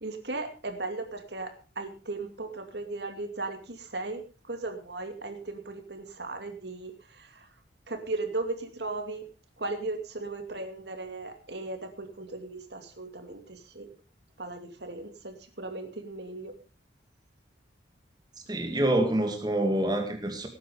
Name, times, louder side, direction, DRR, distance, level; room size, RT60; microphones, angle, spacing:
voice 1, 0.0-4.2 4.5-7.5 7.9-9.3 9.6-13.9 14.4-16.5, right 2 dB, 65° right, 6 dB, 2.5 m, -37 dB
voice 2, 18.5-20.5, right 1 dB, 20° right, 4 dB, 2.2 m, -26 dB
18.5 x 9.5 x 5.0 m, 0.35 s
head